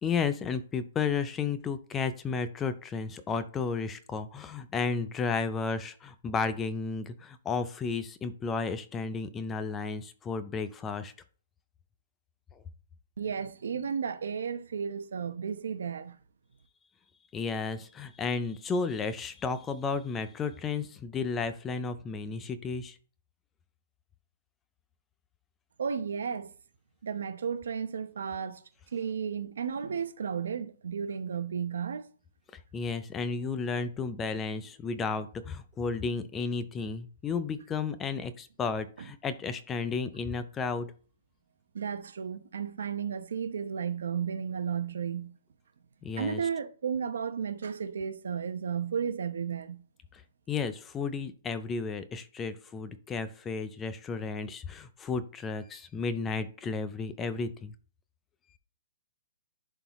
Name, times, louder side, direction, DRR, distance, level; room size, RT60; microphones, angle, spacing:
voice 1, 0.0-11.1 17.3-23.0 32.7-40.9 46.0-46.4 50.1-50.2 50.5-57.7, left 5 dB, 10° left, 0.3 m, -33 dB
voice 2, 13.2-16.2 25.8-26.5 27.0-28.6 28.9-32.1 41.7-45.3 46.2-49.8, right 7 dB, 85° right, 0.8 m, -33 dB
11.0 x 3.8 x 3.0 m
hypercardioid pair, 180°, 0 cm